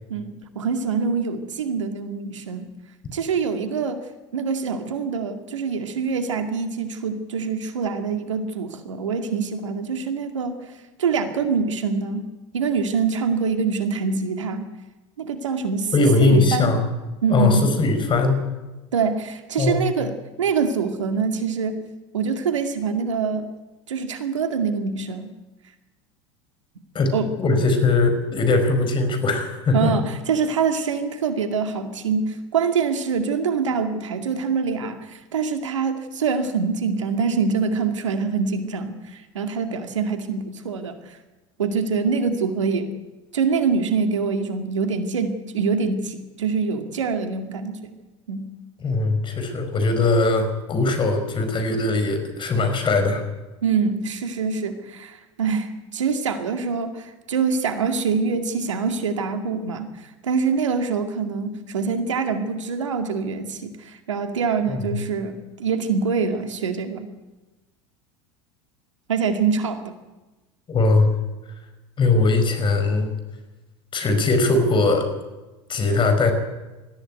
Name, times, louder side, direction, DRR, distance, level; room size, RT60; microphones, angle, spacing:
voice 1, 0.1-2.7 3.1-4.0 4.3-10.7 11.0-12.3 12.5-14.7 15.2-16.7 17.2-17.7 18.9-21.9 22.1-23.5 23.9-25.3 27.1-27.3 29.7-41.2 41.6-42.9 43.3-48.0 48.3-48.5 53.6-67.1 69.1-69.9, right 5 dB, 85° right, 7 dB, 2.2 m, -25 dB
voice 2, 15.9-16.8 17.3-18.5 19.6-19.8 26.9-29.9 48.8-53.2 64.7-65.0 70.7-71.1 72.0-73.1 73.9-75.1 75.7-76.3, left 3 dB, 30° left, 7 dB, 5.2 m, -20 dB
20.0 x 14.5 x 9.3 m, 1.1 s
hypercardioid pair, 85°, 15 cm